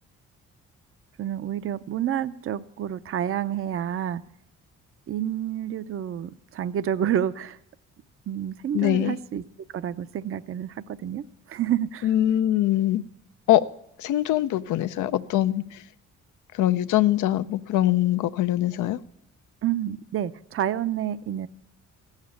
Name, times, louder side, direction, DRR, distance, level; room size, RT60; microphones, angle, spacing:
voice 1, 1.2-4.2 5.1-7.6 8.3-9.4 9.7-12.1 19.6-21.5, right 10 dB, 45° right, 0.5 m, -29 dB
voice 2, 8.7-9.2 12.0-13.0 13.5-13.6 14.0-15.6 16.6-19.0, left 13 dB, 80° left, 0.6 m, -22 dB
16.0 x 7.4 x 8.6 m
cardioid pair, 90°, 30 cm